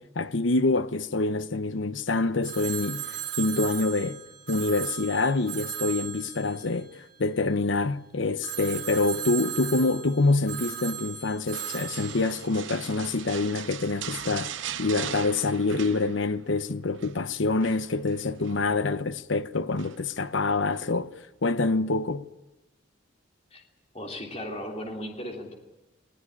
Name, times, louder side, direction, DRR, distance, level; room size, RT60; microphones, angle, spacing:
voice 1, 0.0-4.2 4.5-21.1 21.4-22.3, left 3 dB, 75° left, 0.9 m, -26 dB
Telephone, 2.4-7.7 8.4-13.3, right 11 dB, 50° right, 4.5 m, -37 dB
sound 1, 11.5-16.5 16.8-17.2 17.6-18.6 19.8-20.2 20.7-20.9, right 9 dB, 75° right, 0.8 m, -39 dB
voice 2, 23.9-25.5, left 1 dB, 30° left, 3.2 m, -36 dB
20.5 x 19.0 x 9.9 m
head